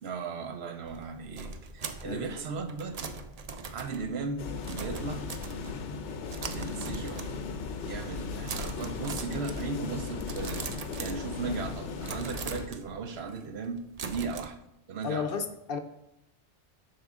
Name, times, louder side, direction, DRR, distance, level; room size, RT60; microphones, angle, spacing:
voice 1, 0.0-3.1 3.7-5.3 6.5-7.3 7.8-10.7 11.0-14.6 14.9-15.3, right 4 dB, 65° right, 7 dB, 0.9 m, -37 dB
sound 1, 0.9-6.0 6.3-7.6 7.9-8.2 8.5-11.7 12.0-14.5, right 4 dB, 50° right, 0.5 m, -41 dB
sound 2, 4.4-12.7, left 4 dB, 85° left, 1.0 m, -37 dB
voice 2, 15.0-15.8, left 6 dB, 60° left, 8 dB, 0.7 m, -32 dB
7.5 x 5.8 x 3.6 m, 0.83 s
omnidirectional pair, 1.2 m